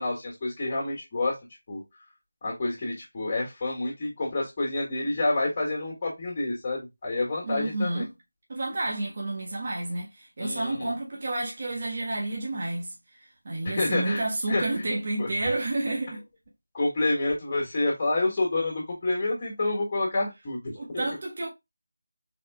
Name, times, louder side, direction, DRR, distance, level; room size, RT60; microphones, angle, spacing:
voice 1, 0.0-1.4 1.7-1.8 2.4-8.0 10.4-10.9 13.6-14.2 14.5-14.7 15.2-15.5 16.7-21.1, left 2 dB, 25° left, 1.8 m, -28 dB
voice 2, 7.4-8.1 8.5-16.2 20.7-21.5, right 2 dB, 40° right, 1.2 m, -30 dB
4.9 x 4.3 x 2.2 m
figure-of-eight pair, 170°, 0 cm